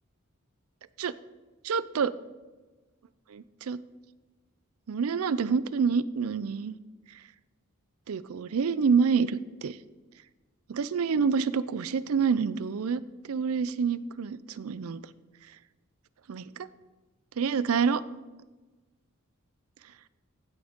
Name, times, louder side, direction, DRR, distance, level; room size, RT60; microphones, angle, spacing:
voice 1, 1.6-2.1 3.3-3.8 4.9-6.8 8.1-9.8 10.7-13.0 13.3-15.0 16.3-16.7 17.4-18.0, right 5 dB, 75° right, 16 dB, 0.4 m, -27 dB
15.5 x 6.2 x 3.6 m, 1.2 s
head